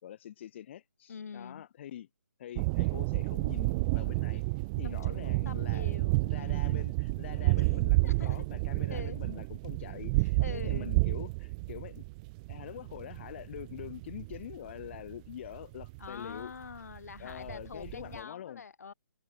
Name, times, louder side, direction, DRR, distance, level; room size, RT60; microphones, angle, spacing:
voice 1, 0.0-2.1 2.4-4.4 4.8-12.0 12.5-16.5 17.2-18.6, left 11 dB, 40° left, 4.9 m, -45 dB
voice 2, 1.1-1.7 4.8-6.8 7.6-7.7 8.0-8.4 8.9-9.2 10.4-10.9 16.0-18.9, left 6 dB, 65° left, 6.3 m, -45 dB
sound 1, 2.6-18.2, right 26 dB, 25° right, 2.3 m, -31 dB
figure-of-eight pair, 140°, 9 cm